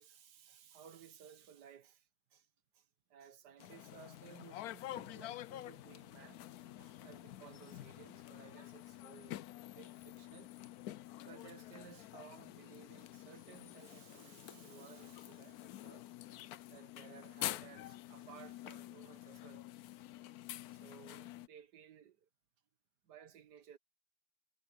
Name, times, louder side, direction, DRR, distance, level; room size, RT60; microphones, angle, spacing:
voice 1, 0.0-2.5 2.7-6.5 6.8-10.5 11.2-16.1 16.7-19.6 20.7-22.3 23.0-23.8, right 9 dB, 75° right, 1.7 m, -58 dB
sound 1, 3.6-21.5, left 14 dB, 70° left, 1.0 m, -48 dB
omnidirectional pair, 1.8 m